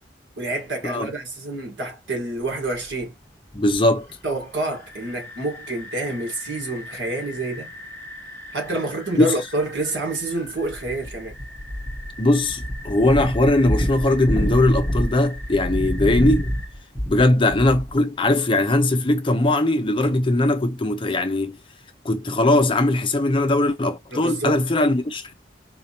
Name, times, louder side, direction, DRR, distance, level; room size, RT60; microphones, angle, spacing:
voice 1, 0.4-3.1 4.2-7.7 8.5-11.3 24.1-24.7, right 2 dB, 90° right, 1.7 m, -28 dB
sound 1, 2.9-3.0 3.5-3.8 4.7-18.0, equal, 10° left, 1.1 m, -30 dB
voice 2, 3.5-4.1 9.2-9.3 12.2-16.5 17.1-21.6 22.0-25.3, left 2 dB, 30° left, 0.6 m, -20 dB
4.1 x 2.8 x 2.9 m
head